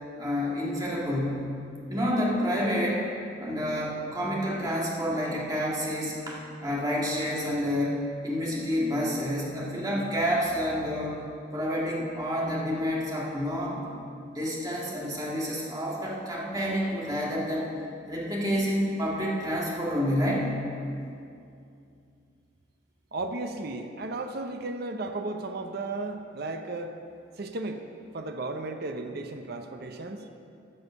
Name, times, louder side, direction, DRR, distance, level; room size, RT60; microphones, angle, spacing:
voice 1, 0.2-1.5 1.9-3.0 3.4-11.2 11.5-13.8 14.3-17.7 18.1-20.5, equal, 20° right, -4 dB, 2.0 m, -29 dB
voice 2, 23.1-26.9 27.4-27.8 28.1-30.3, right 2 dB, 55° right, 5 dB, 0.7 m, -34 dB
12.0 x 6.4 x 7.0 m, 2.5 s
head